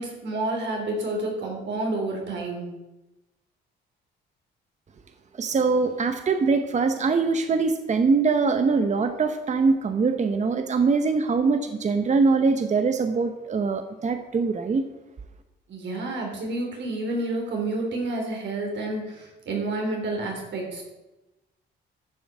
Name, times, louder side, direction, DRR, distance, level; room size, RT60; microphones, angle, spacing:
voice 1, 0.0-2.7 15.7-20.8, right 2 dB, 65° right, 0 dB, 3.7 m, -29 dB
voice 2, 5.4-14.8, right 4 dB, 35° right, 8 dB, 0.9 m, -23 dB
11.0 x 7.1 x 6.0 m, 1.0 s
cardioid pair, 90°, 20 cm